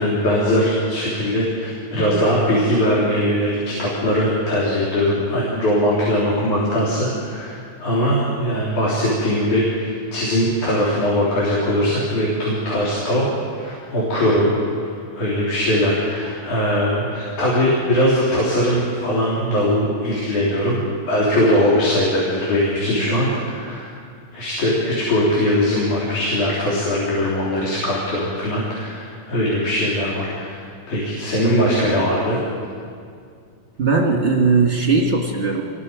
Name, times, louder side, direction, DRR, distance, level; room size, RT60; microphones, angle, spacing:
voice 1, 0.0-14.5 14.8-20.8 21.1-23.8 24.3-30.6 30.9-32.4, equal, 60° left, -6 dB, 4.8 m, -20 dB
voice 2, 33.8-35.6, right 4 dB, 25° right, -1 dB, 1.8 m, -18 dB
27.5 x 21.0 x 5.2 m, 2.2 s
omnidirectional pair, 3.9 m